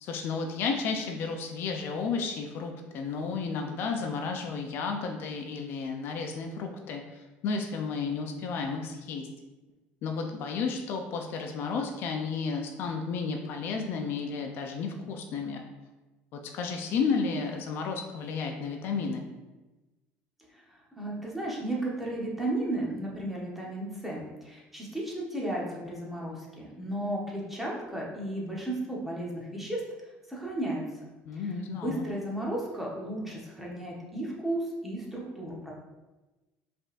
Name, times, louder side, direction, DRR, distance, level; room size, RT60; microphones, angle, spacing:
voice 1, 0.0-9.3 10.0-15.6 16.3-19.3 31.2-32.1, left 5 dB, 55° left, 3 dB, 0.5 m, -32 dB
voice 2, 21.0-29.8 30.3-30.8 31.3-31.5 31.7-35.7, right 1 dB, 5° right, -4 dB, 1.1 m, -34 dB
5.2 x 3.5 x 2.5 m, 1.1 s
cardioid pair, 140°, 4 cm